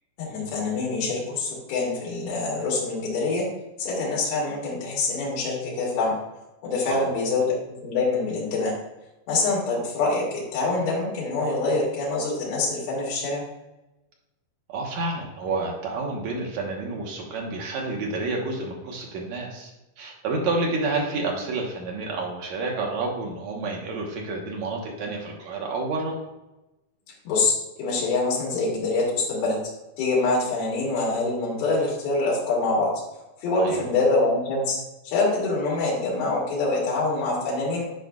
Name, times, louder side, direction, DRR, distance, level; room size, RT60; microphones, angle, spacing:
voice 1, 0.2-3.5 3.8-6.2 6.6-8.7 9.3-13.4 27.3-29.6 30.0-32.9 33.4-34.8 35.0-37.9, left 3 dB, 80° left, -5 dB, 3.9 m, -25 dB
voice 2, 14.7-19.7 20.0-26.2 33.6-33.9, right 3 dB, 65° right, -1 dB, 1.9 m, -29 dB
10.0 x 5.0 x 2.3 m, 0.98 s
omnidirectional pair, 4.3 m